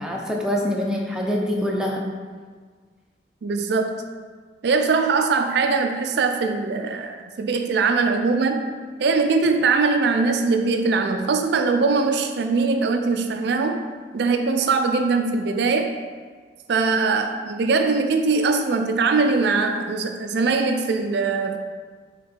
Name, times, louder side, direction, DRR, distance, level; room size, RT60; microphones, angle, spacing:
voice 1, 0.0-2.0, left 1 dB, 5° right, -1 dB, 0.7 m, -25 dB
voice 2, 3.4-4.0 4.6-8.7 9.0-13.8 14.1-15.9 16.7-21.6, right 4 dB, 65° right, 5 dB, 0.4 m, -21 dB
6.5 x 3.7 x 4.3 m, 1.5 s
head